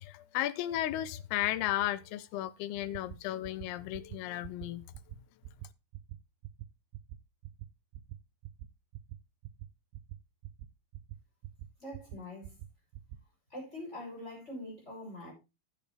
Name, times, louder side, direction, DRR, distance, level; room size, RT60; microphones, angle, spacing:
voice 1, 0.0-4.8, left 14 dB, 90° left, 2.7 m, -34 dB
sound 1, 2.9-3.2 3.4-3.7 3.9-4.2 4.4-4.7 4.9-5.2 5.4-5.7 5.9-6.2 6.4-6.7 6.9-7.2 7.4-7.7 7.9-8.2 8.4-8.7 8.9-9.2 9.4-9.7 9.9-10.2 10.4-10.7 10.9-11.2 11.4-11.7 11.9-12.2 12.4-12.7 12.9-13.2, right 14 dB, 85° right, 2.5 m, -44 dB
voice 2, 11.8-12.6 13.5-15.3, left 1 dB, 15° left, 6.7 m, -44 dB
10.5 x 8.8 x 3.4 m
omnidirectional pair, 4.4 m